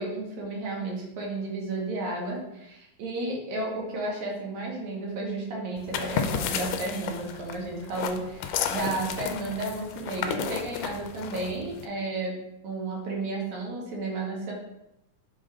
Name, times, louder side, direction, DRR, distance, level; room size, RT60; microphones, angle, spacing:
voice 1, 0.0-12.4 12.6-14.5, right 2 dB, 65° right, -2 dB, 2.6 m, -32 dB
sound 1, 5.8-11.9, left 8 dB, 90° left, 2.2 m, -32 dB
6.1 x 5.1 x 3.8 m, 0.87 s
omnidirectional pair, 3.7 m